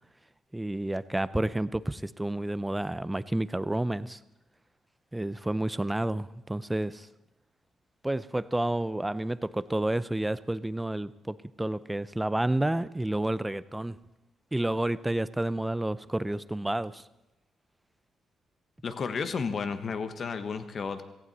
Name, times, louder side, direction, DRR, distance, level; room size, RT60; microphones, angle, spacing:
voice 1, 0.5-4.2 5.1-7.1 8.0-14.0 14.5-17.0, right 1 dB, 10° right, 17 dB, 0.5 m, -30 dB
voice 2, 18.8-21.0, left 5 dB, 45° left, 10 dB, 1.2 m, -32 dB
17.5 x 15.5 x 4.2 m, 0.94 s
cardioid pair, 90°, 0 cm